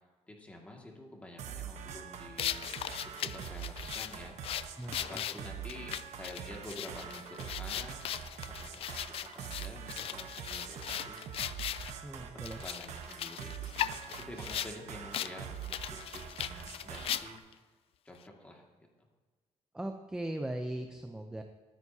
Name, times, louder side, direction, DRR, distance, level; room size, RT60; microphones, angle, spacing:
voice 1, 0.3-2.7 3.0-4.4 5.0-9.0 9.3-11.2 12.2-13.5 13.8-17.4 18.0-18.9, left 1 dB, 10° left, 0 dB, 2.1 m, -49 dB
sound 1, 1.4-17.4, right 7 dB, 70° right, 1.1 m, -44 dB
sound 2, 2.4-11.9 12.4-14.7 15.1-15.3 15.6-17.5, left 11 dB, 50° left, 0.4 m, -38 dB
voice 2, 4.8-5.5 12.0-12.6 19.7-21.4, right 1 dB, 5° right, 5 dB, 0.6 m, -39 dB
22.5 x 9.5 x 2.8 m, 1.4 s
cardioid pair, 160°, 12 cm